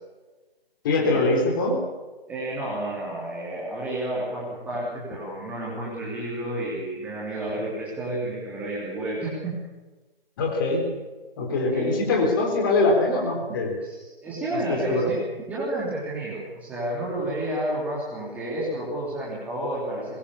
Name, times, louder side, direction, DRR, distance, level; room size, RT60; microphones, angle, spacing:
voice 1, 0.8-1.8 10.4-10.8 11.4-13.7 14.5-15.1, left 2 dB, 20° left, 1 dB, 3.9 m, -23 dB
voice 2, 2.3-9.6 11.7-11.9 13.8-14.0 14.2-20.2, right 1 dB, 5° right, -6 dB, 3.1 m, -30 dB
23.0 x 21.5 x 7.0 m, 1.2 s
figure-of-eight pair, 155°, 31 cm